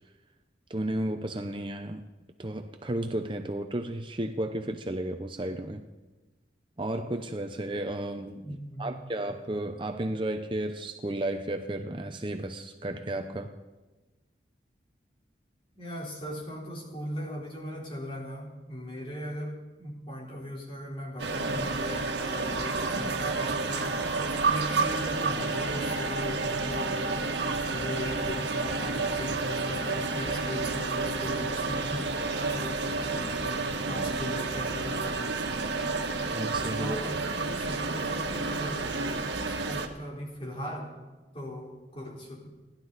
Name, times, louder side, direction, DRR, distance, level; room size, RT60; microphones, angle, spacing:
voice 1, 0.7-2.0 2.4-5.8 6.8-13.5 36.3-37.0, right 1 dB, 25° right, 6 dB, 0.7 m, -33 dB
voice 2, 8.4-9.0 15.8-35.5 36.8-39.2 39.5-40.9 41.3-42.5, equal, 30° left, -2 dB, 4.0 m, -39 dB
sound 1, 21.2-39.9, right 3 dB, 80° right, 1.6 m, -30 dB
29.0 x 11.5 x 4.1 m, 1.2 s
head